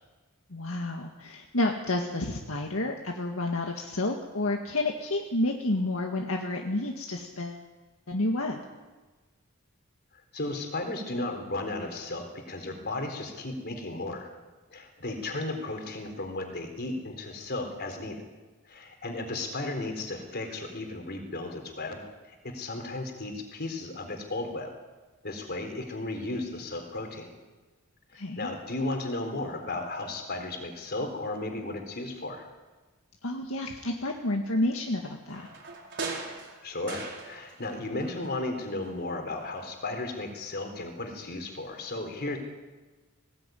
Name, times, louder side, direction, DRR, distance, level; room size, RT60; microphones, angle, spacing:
voice 1, 0.5-7.6 8.1-8.6 28.2-28.5 33.2-35.5, left 2 dB, 75° left, 1 dB, 1.9 m, -30 dB
voice 2, 10.3-14.3 14.7-18.2 18.7-24.7 25.2-27.3 28.1-32.5 36.6-42.4, left 2 dB, 50° left, 5 dB, 3.9 m, -35 dB
sound 1, 35.3-37.7 38.0-39.1 39.4-39.5, right 4 dB, 55° right, 4.5 m, -40 dB
19.5 x 17.5 x 9.3 m, 1.3 s
head